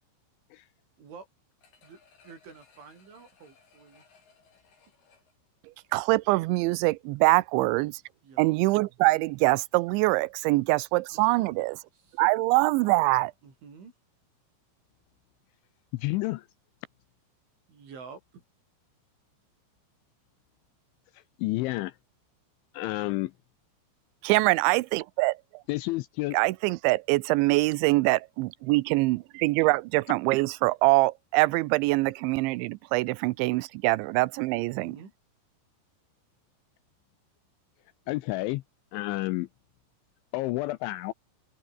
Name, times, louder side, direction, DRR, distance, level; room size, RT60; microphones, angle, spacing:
sound 1, 1.6-6.4 6.8-6.9, left 5 dB, 50° left, 7.5 m, -62 dB
voice 1, 2.2-4.0 8.2-8.5 11.1-12.2 13.4-13.9 17.7-18.4 34.6-35.1, right 5 dB, 65° right, 9.2 m, -49 dB
voice 2, 5.9-8.0 8.4-11.8 12.2-13.3 24.2-25.4 26.3-35.0, right 22 dB, 90° right, 2.7 m, -24 dB
voice 3, 15.9-16.5 21.1-22.0 22.7-23.3 25.7-26.4 38.1-38.6 38.9-39.5 40.3-41.1, left 19 dB, 85° left, 2.8 m, -30 dB
open air
omnidirectional pair, 6.0 m